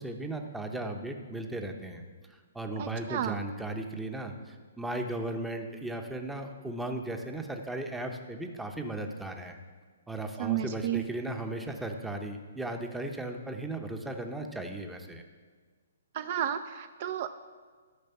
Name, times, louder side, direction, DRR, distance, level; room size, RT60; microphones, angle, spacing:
voice 1, 0.0-2.0 2.5-9.6 10.1-15.2, right 2 dB, 5° right, 4 dB, 0.7 m, -36 dB
voice 2, 2.8-3.4 10.4-11.0 16.1-17.3, right 11 dB, 40° right, 10 dB, 0.4 m, -32 dB
12.5 x 5.1 x 6.9 m, 1.5 s
hypercardioid pair, 155°, 0 cm